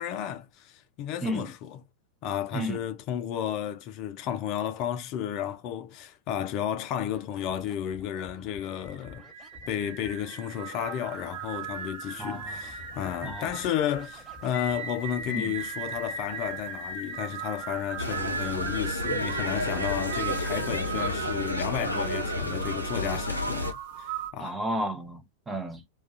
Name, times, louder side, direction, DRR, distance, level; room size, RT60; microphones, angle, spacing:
voice 1, 0.0-1.8 2.2-9.2 9.7-24.6, left 10 dB, 40° left, 0.4 m, -32 dB
voice 2, 1.2-1.5 2.5-2.8 12.2-12.6 13.2-13.5 15.3-15.6 24.4-25.9, right 1 dB, 10° right, 0.6 m, -33 dB
Scratching (performance technique), 7.2-15.7, left 2 dB, 5° left, 1.1 m, -52 dB
sound 1, 8.6-24.3, right 5 dB, 45° right, 0.8 m, -37 dB
sound 2, 18.0-23.7, left 1 dB, 90° right, 0.6 m, -31 dB
2.3 x 2.3 x 2.4 m
figure-of-eight pair, 90°, 0 cm